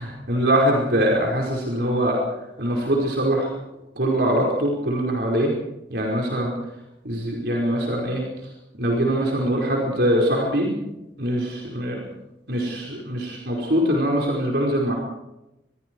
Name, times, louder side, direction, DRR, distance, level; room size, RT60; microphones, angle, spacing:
voice 1, 0.0-2.2 2.6-3.5 3.9-5.5 5.9-6.5 7.0-8.2 8.8-10.7 11.2-12.0 12.5-14.9, right 1 dB, 60° right, -1 dB, 5.1 m, -22 dB
28.0 x 22.5 x 4.8 m, 0.94 s
head